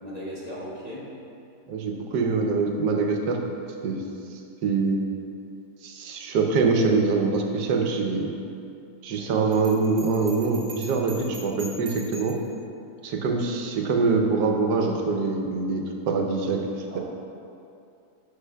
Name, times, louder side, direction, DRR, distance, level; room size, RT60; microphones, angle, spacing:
voice 1, 0.0-1.1 16.9-17.0, equal, 35° left, -7 dB, 0.7 m, -37 dB
voice 2, 1.7-3.4 3.8-4.0 4.6-5.0 5.8-8.3 9.0-12.3 13.0-16.6, right 4 dB, 85° right, 2 dB, 1.3 m, -24 dB
Bell, 9.5-12.5, right 3 dB, 65° right, 1.4 m, -43 dB
9.7 x 5.8 x 2.2 m, 2.6 s
omnidirectional pair, 1.7 m